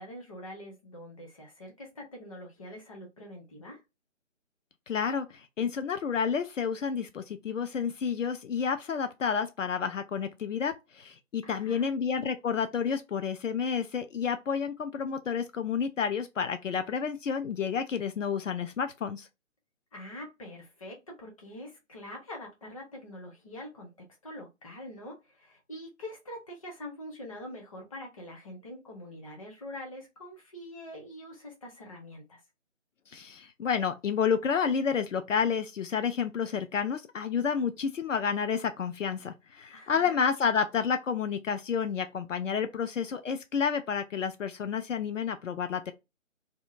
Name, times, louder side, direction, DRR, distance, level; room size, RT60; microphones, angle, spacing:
voice 1, 0.0-3.8 11.4-11.9 19.9-23.9 24.2-32.4 39.7-40.2, left 1 dB, 25° left, 0.8 m, -44 dB
voice 2, 4.9-19.3 33.1-45.9, left 6 dB, 75° left, 0.5 m, -30 dB
2.8 x 2.2 x 2.4 m
figure-of-eight pair, 150°, 38 cm